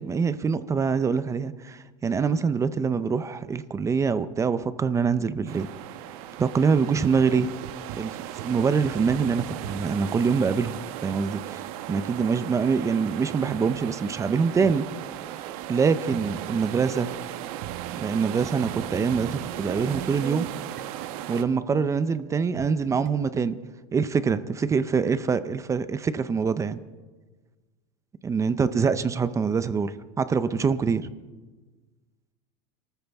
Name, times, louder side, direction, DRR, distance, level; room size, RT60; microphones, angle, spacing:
voice 1, 0.0-5.7 6.4-7.5 8.0-8.2 8.4-11.6 11.9-14.9 15.7-17.1 18.0-20.5 21.3-23.6 23.9-26.8 28.2-29.9 30.2-31.1, right 5 dB, 15° right, 13 dB, 0.5 m, -24 dB
sound 1, 5.5-21.4, right 12 dB, 70° right, 1.1 m, -37 dB
sound 2, 6.9-9.8 12.2-12.3 13.0-13.1 14.6-14.7 15.1-15.2 15.6-15.7 15.9-22.7 23.1-23.2, right 11 dB, 45° right, 0.9 m, -40 dB
28.0 x 14.0 x 3.5 m, 1.3 s
supercardioid pair, 150°, 19 cm